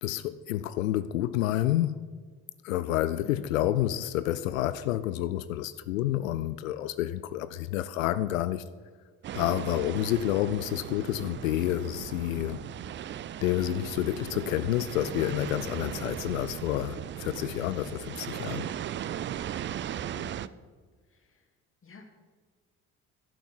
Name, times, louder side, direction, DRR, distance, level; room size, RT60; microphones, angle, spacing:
voice 1, 0.0-2.1 2.6-8.6 9.3-12.6 13.4-18.7, left 13 dB, 75° left, 0.5 m, -29 dB
voice 2, 3.2-3.6 20.1-20.5 21.1-21.5 21.8-22.0, left 4 dB, 30° left, 2.5 m, -50 dB
sound 1, 9.2-20.5, right 10 dB, 30° right, 0.4 m, -37 dB
11.5 x 8.3 x 6.3 m
figure-of-eight pair, 45°, 40 cm